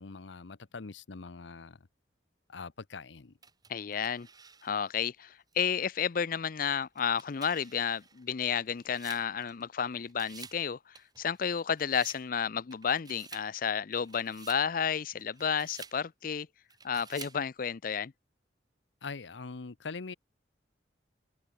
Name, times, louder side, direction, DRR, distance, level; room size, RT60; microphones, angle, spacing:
voice 1, 0.0-1.9 2.5-3.3 19.0-20.1, left 4 dB, 85° left, 0.8 m, -43 dB
sound 1, 3.4-5.0 5.5-5.6 6.8-9.8 10.1-10.6 10.9-12.2 12.7-13.5 13.9-14.7 15.2-16.0 16.7-17.4, right 5 dB, 20° right, 2.4 m, -51 dB
voice 2, 3.7-4.3 4.6-16.5 16.8-18.1, left 7 dB, 50° left, 0.5 m, -32 dB
open air
head